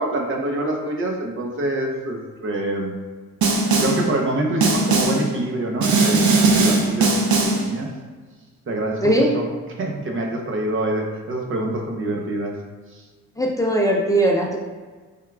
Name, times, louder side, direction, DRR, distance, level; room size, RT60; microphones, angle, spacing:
voice 1, 0.0-2.9 3.8-7.9 8.7-9.5 9.7-12.6 12.9-13.0, right 1 dB, 45° right, 1 dB, 0.8 m, -26 dB
Snare drum, 3.4-4.1 4.6-5.3 5.8-7.7, right 3 dB, 75° right, 0.7 m, -18 dB
voice 2, 9.0-9.3 13.4-14.6, right 1 dB, 10° left, -2 dB, 0.6 m, -19 dB
4.4 x 3.6 x 2.3 m, 1.4 s
cardioid pair, 90°, 30 cm